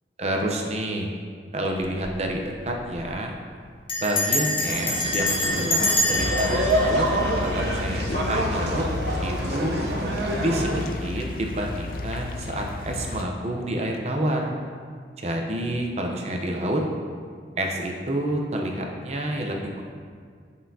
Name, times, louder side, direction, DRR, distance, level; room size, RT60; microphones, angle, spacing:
voice 1, 0.2-1.1 1.5-3.3 4.0-7.1 7.4-8.8 9.2-9.7 10.2-14.5 15.2-16.8 17.6-19.9, right 1 dB, 35° right, 1 dB, 0.8 m, -28 dB
Bell, 1.8-2.1 2.4-2.5 2.7-3.1 3.9-8.0, left 2 dB, 30° left, 0.9 m, -26 dB
sound 1, 4.7-10.9, right 1 dB, 70° right, 0.9 m, -27 dB
sound 2, 6.2-13.2, left 3 dB, 50° left, 0.5 m, -32 dB
10.0 x 5.6 x 2.8 m, 2.1 s
head